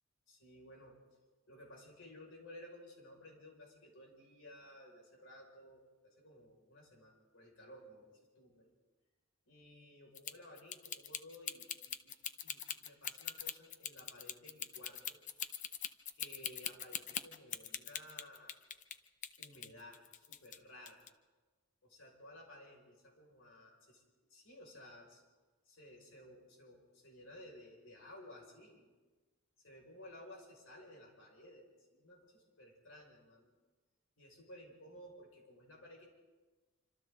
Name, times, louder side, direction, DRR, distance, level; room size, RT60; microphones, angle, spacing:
voice 1, 0.3-1.0 1.5-8.7 9.5-12.1 12.4-15.2 16.1-18.6 19.4-21.1 21.8-24.0 24.3-25.2 25.6-28.9 29.6-33.5 34.2-36.1, left 1 dB, 80° left, 0 dB, 5.9 m, -56 dB
sound 1, 10.1-19.0 19.2-20.6 20.9-21.1, left 9 dB, 40° left, 0.8 m, -42 dB
27.0 x 26.0 x 3.9 m, 1.3 s
head